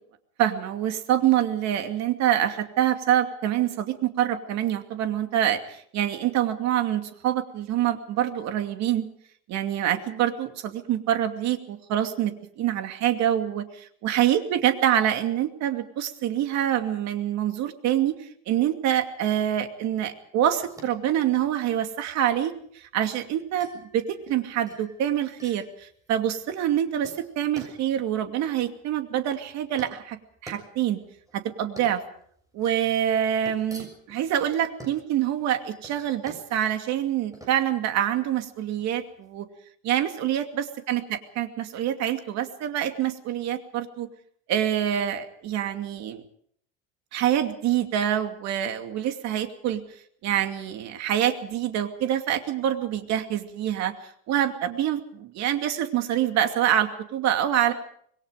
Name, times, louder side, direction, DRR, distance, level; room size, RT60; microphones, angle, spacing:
voice 1, 0.4-9.1 9.5-18.2 18.5-22.5 22.9-30.2 30.4-31.0 31.3-32.0 32.5-39.5 39.8-44.1 44.5-46.2 47.1-49.8 50.2-53.9 54.3-57.7, right 11 dB, 50° right, 7 dB, 2.6 m, -26 dB
sound 1, 20.6-39.4, right 1 dB, 10° right, 6.8 m, -49 dB
26.5 x 21.5 x 5.1 m, 0.64 s
cardioid pair, 150°, 34 cm